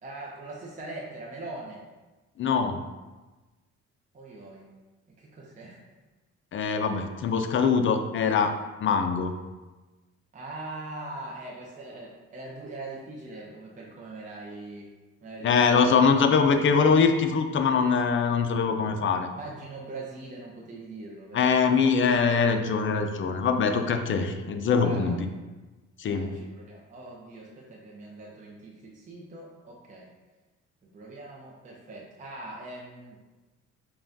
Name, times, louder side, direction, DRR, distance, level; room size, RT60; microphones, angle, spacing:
voice 1, 0.0-1.8 4.1-4.7 5.2-5.8 10.3-14.9 15.2-15.8 19.3-21.6 24.8-25.2 26.0-30.1 30.9-33.2, right 2 dB, 25° right, -3 dB, 0.6 m, -41 dB
voice 2, 2.4-2.8 6.5-8.5 8.8-9.3 15.4-19.3 21.3-25.2 26.0-26.3, left 5 dB, 40° left, 6 dB, 0.4 m, -23 dB
5.4 x 2.3 x 2.6 m, 1.2 s
cardioid pair, 90°, 30 cm